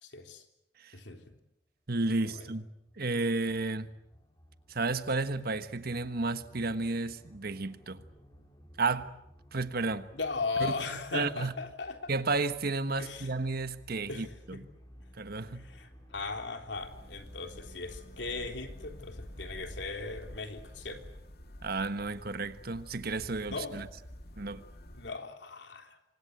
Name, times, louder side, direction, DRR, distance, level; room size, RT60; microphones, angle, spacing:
voice 1, 0.0-0.4 0.9-1.2 2.2-2.4 10.1-12.1 13.0-13.3 14.1-14.6 15.5-21.0 23.5-23.8 24.9-26.0, left 4 dB, 75° left, 3.6 m, -38 dB
voice 2, 1.9-2.7 3.0-3.9 4.7-8.0 8.8-9.1 9.5-10.1 10.6-10.7 11.1-11.5 12.1-14.6 15.2-15.6 21.6-23.9 24.4-24.6, right 3 dB, 60° right, 1.4 m, -32 dB
sound 1, 2.7-21.2, equal, 20° left, 4.9 m, -57 dB
sound 2, 16.7-25.1, left 1 dB, 60° left, 2.5 m, -48 dB
28.0 x 25.0 x 8.0 m
head